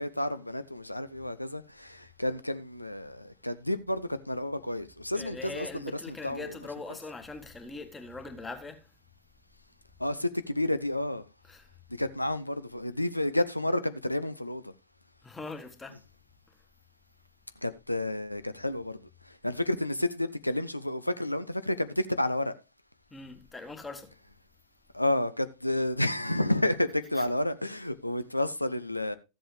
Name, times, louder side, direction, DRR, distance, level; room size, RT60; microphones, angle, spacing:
voice 1, 0.0-6.6 10.0-11.2 12.0-14.7 17.6-19.0 19.2-22.5 24.9-29.1, left 1 dB, 85° left, 0.4 m, -30 dB
voice 2, 5.1-8.9 11.4-11.7 15.2-16.0 23.1-24.1 27.0-27.3, left 3 dB, 15° left, 1.5 m, -42 dB
13.5 x 7.8 x 3.2 m
figure-of-eight pair, 90°, 0 cm